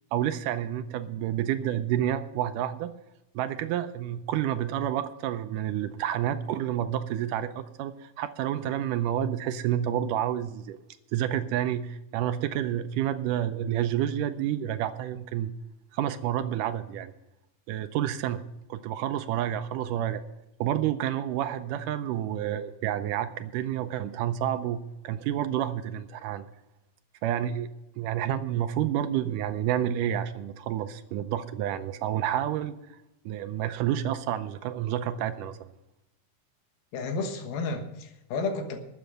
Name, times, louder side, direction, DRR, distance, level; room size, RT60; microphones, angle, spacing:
voice 1, 0.1-2.9 3.4-10.8 11.1-15.5 15.9-17.1 17.7-18.4 18.7-20.2 20.6-26.5 27.2-27.7 28.0-32.8 33.3-35.7, right 11 dB, 80° right, 10 dB, 2.0 m, -29 dB
voice 2, 36.9-38.8, left 3 dB, 90° left, 6 dB, 3.2 m, -32 dB
13.0 x 8.2 x 7.7 m, 0.93 s
omnidirectional pair, 4.2 m